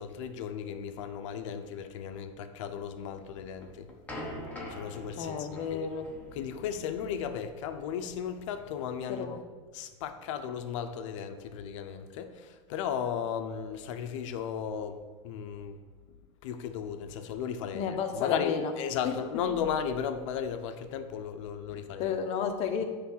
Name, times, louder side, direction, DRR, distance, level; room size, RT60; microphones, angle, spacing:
voice 1, 0.0-3.9 4.7-5.9 6.3-9.5 9.7-15.8 16.1-16.2 16.4-22.2, left 8 dB, 70° left, 8 dB, 0.7 m, -35 dB
sound 1, 3.3-8.3, left 1 dB, 10° left, 1.2 m, -44 dB
voice 2, 5.2-6.1 9.1-9.4 17.7-18.7 19.0-19.2 21.7-22.8, left 7 dB, 40° left, 5 dB, 0.9 m, -32 dB
9.4 x 3.4 x 6.3 m, 1.5 s
supercardioid pair, 150°, 17 cm